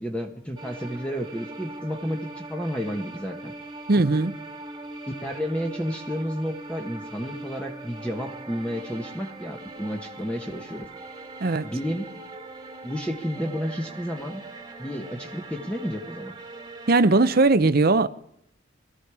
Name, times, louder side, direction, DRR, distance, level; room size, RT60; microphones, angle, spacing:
voice 1, 0.0-3.5 5.2-10.9 11.6-12.1 12.8-14.4 14.8-16.3, equal, 5° left, 1.2 m, -31 dB
sound 1, 0.6-17.5, right 2 dB, 20° right, 1.7 m, -41 dB
voice 2, 3.9-4.3 11.4-11.7 16.9-18.1, right 3 dB, 50° right, 0.7 m, -19 dB
21.5 x 13.5 x 4.8 m
head